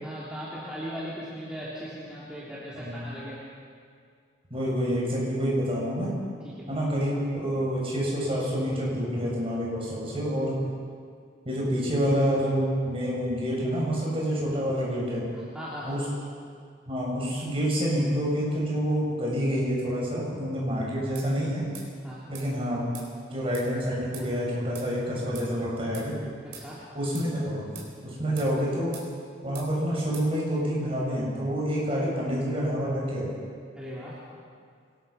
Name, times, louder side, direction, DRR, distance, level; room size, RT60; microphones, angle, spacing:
voice 1, 0.0-3.4 6.4-6.8 15.3-16.0 22.0-22.2 26.4-26.8 33.7-34.1, equal, 5° right, -9 dB, 3.4 m, -38 dB
voice 2, 4.5-6.1 6.7-10.6 11.4-15.2 15.9-16.0 16.9-21.6 22.3-22.9 23.3-26.1 26.9-27.7 28.0-29.0 29.4-33.3, equal, 30° right, -4 dB, 7.3 m, -27 dB
sound 1, 21.2-21.3 21.8-21.9 22.4-22.5 22.9-23.1 23.5-23.7 24.1-24.3 24.8-24.9 25.4-25.5 25.9-26.1 26.5-26.7 27.2-27.3 27.8-27.9 28.4-28.5 28.9-29.1 29.6-29.7 30.1-30.3, right 7 dB, 65° right, 4.3 m, -44 dB
25.0 x 19.5 x 6.0 m, 2.1 s
head